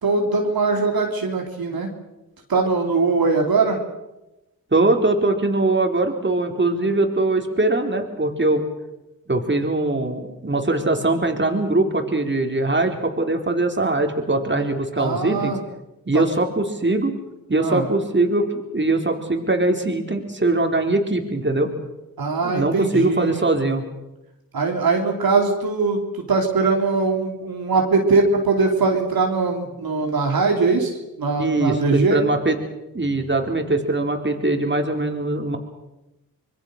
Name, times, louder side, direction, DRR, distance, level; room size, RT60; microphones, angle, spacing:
voice 1, 0.0-1.9 2.5-3.8 15.0-15.6 16.1-16.2 17.6-17.8 22.2-23.3 24.5-26.0 26.3-32.2, right 4 dB, 80° right, 2 dB, 3.4 m, -21 dB
voice 2, 4.7-8.6 9.3-15.5 16.1-17.2 17.5-21.7 22.4-23.8 31.4-32.6 32.9-35.6, right 2 dB, 30° right, 3 dB, 4.1 m, -21 dB
26.0 x 21.0 x 6.6 m, 0.96 s
cardioid pair, 50°, 36 cm